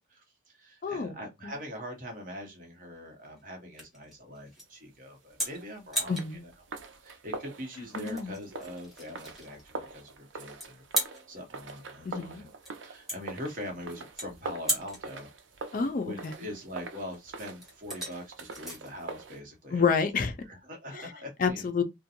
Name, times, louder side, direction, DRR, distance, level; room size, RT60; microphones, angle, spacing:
voice 1, 0.1-6.2 6.4-6.5 7.0-12.5 12.8-15.3 16.0-19.8 20.1-21.7, equal, 45° right, 0.9 m, -43 dB
voice 2, 0.8-1.1 1.4-1.5 6.1-6.4 7.8-8.3 12.0-12.5 15.7-16.3 19.7-20.3 21.0-21.1 21.4-21.8, left 5 dB, 45° left, 0.4 m, -29 dB
sound 1, 1.5-20.3, equal, ahead, 0.9 m, -40 dB
sound 2, 5.3-19.4, right 3 dB, 80° right, 0.5 m, -44 dB
2.5 x 2.1 x 2.8 m
head